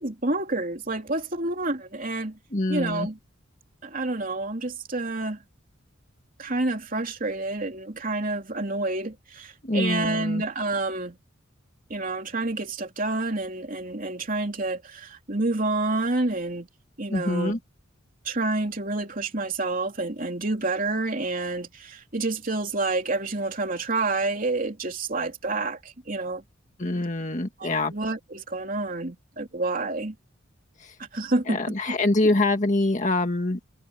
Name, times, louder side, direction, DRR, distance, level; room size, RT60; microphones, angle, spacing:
voice 1, 0.0-2.4 2.7-3.2 3.8-5.4 6.4-11.2 11.9-16.7 17.0-17.6 18.2-26.4 27.6-30.1 31.0-31.6 31.9-32.0, right 2 dB, 45° right, 3.1 m, -28 dB
voice 2, 2.5-3.1 9.6-10.4 17.1-17.6 26.8-27.9 30.8-30.9 31.5-33.6, left 2 dB, 35° left, 1.8 m, -25 dB
head